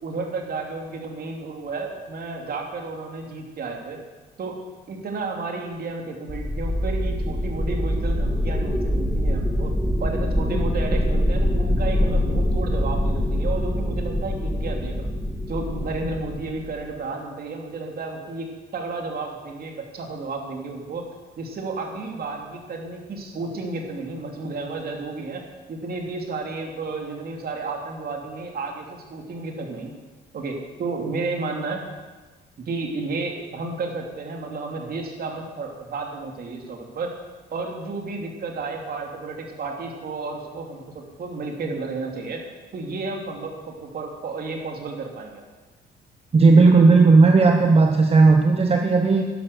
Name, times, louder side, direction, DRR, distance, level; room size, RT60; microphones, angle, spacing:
voice 1, 0.0-4.0 4.4-9.7 10.0-15.1 15.5-21.1 21.4-29.9 30.3-31.8 32.6-37.2 37.5-42.4 42.7-45.4, right 3 dB, 55° right, 2 dB, 2.8 m, -32 dB
sound 1, 6.3-16.9, equal, 5° left, 2.0 m, -24 dB
voice 2, 46.3-49.2, right 3 dB, 30° right, 4 dB, 1.1 m, -15 dB
11.0 x 11.0 x 6.6 m, 1.3 s
cardioid pair, 85°, 19 cm